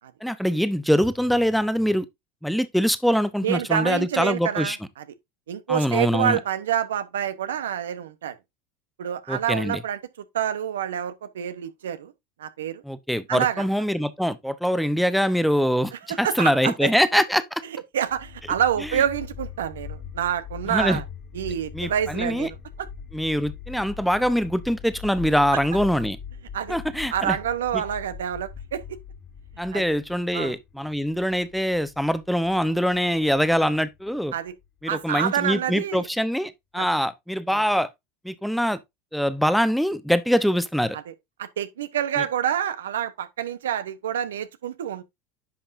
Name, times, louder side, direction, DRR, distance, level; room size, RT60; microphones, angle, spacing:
voice 1, 0.2-2.1 2.4-4.8 5.7-6.4 9.3-9.8 12.8-15.9 16.2-17.4 18.9-19.0 20.7-21.0 21.7-22.5 23.1-26.2 26.7-27.4 27.7-27.8 29.6-34.3 34.8-37.9 38.2-38.8 39.1-41.0 42.2-42.3, equal, ahead, 0.9 m, -23 dB
voice 2, 3.4-5.0 5.5-8.3 9.0-10.0 10.3-12.1 12.4-12.8 13.3-13.6 16.1-16.9 17.9-21.0 21.3-22.9 25.5-25.6 26.5-26.8 27.1-29.0 29.7-29.8 30.3-30.5 34.3-34.5 34.9-36.1 36.8-36.9 37.5-37.6 41.4-45.0, right 9 dB, 85° right, 0.9 m, -27 dB
sound 1, 18.1-35.1, left 7 dB, 35° left, 2.0 m, -41 dB
10.5 x 5.7 x 2.6 m
hypercardioid pair, 85°, 0 cm